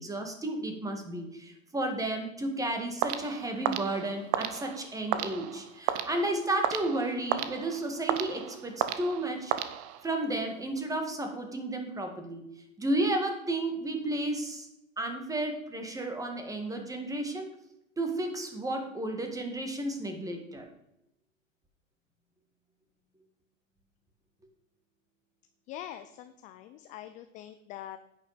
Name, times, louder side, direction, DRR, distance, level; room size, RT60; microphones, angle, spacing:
voice 1, 0.0-9.5 10.0-12.5 12.8-14.7 15.0-17.5 18.0-20.7, right 1 dB, 10° right, 4 dB, 2.0 m, -32 dB
sound 1, 3.0-10.3, right 11 dB, 35° right, 1.0 m, -34 dB
voice 2, 25.7-28.0, left 11 dB, 20° left, 10 dB, 0.4 m, -44 dB
10.5 x 9.4 x 5.1 m, 0.85 s
hypercardioid pair, 125°, 39 cm